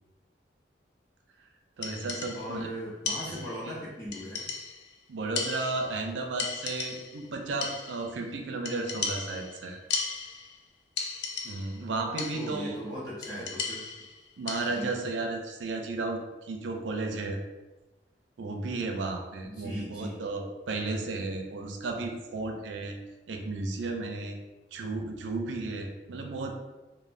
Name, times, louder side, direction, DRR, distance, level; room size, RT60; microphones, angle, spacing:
sound 1, 1.8-2.6 3.1-3.7 4.1-4.9 5.4-6.1 6.4-7.3 7.6-8.2 8.7-10.6 11.0-11.8 12.2-12.7 13.2-15.0, left 5 dB, 75° left, 0.4 m, -36 dB
voice 1, 1.8-2.7 3.6-3.7 5.1-9.8 11.4-12.8 14.4-17.4 18.4-23.0 23.3-24.4 24.7-26.5, right 3 dB, 90° right, 3 dB, 0.4 m, -33 dB
voice 2, 2.3-4.5 12.3-13.8 14.7-14.9 19.4-20.2, equal, 20° left, -9 dB, 0.5 m, -38 dB
3.1 x 2.0 x 2.5 m, 1.1 s
head